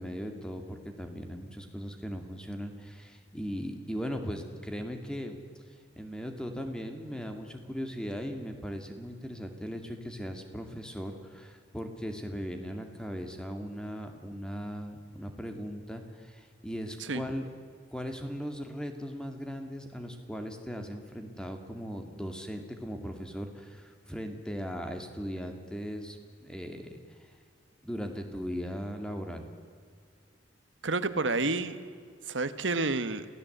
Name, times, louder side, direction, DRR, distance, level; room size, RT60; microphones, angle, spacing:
voice 1, 0.0-5.4 6.0-17.5 17.9-27.2 27.8-29.5, equal, 5° left, 5 dB, 2.3 m, -38 dB
voice 2, 30.8-31.8 32.3-33.2, right 3 dB, 90° right, 11 dB, 1.4 m, -29 dB
27.0 x 17.0 x 8.0 m, 2.1 s
head